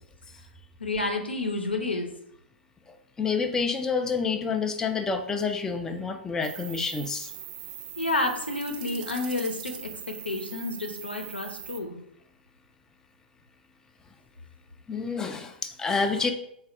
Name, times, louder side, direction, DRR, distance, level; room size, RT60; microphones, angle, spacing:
voice 1, 0.8-2.1 8.0-9.7 10.1-12.0, left 2 dB, 85° left, 3 dB, 0.7 m, -30 dB
voice 2, 2.9-7.3 14.9-16.3, left 5 dB, 10° left, 5 dB, 0.4 m, -28 dB
sound 1, 6.4-11.8, right 10 dB, 50° right, 0.5 m, -41 dB
3.9 x 2.4 x 4.6 m, 0.74 s
figure-of-eight pair, 105°, 6 cm